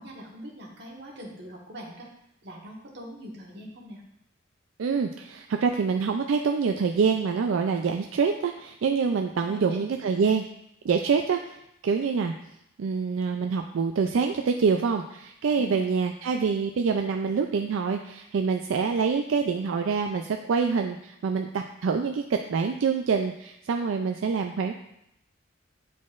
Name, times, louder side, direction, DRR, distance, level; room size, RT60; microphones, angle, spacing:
voice 1, 0.0-2.1 2.4-4.0 9.4-9.8 15.6-15.9, equal, 60° right, -2 dB, 1.4 m, -42 dB
voice 2, 4.8-10.4 10.8-11.6 11.8-12.3 12.8-24.7, right 5 dB, 85° right, 4 dB, 0.4 m, -26 dB
9.2 x 4.1 x 2.5 m, 0.79 s
head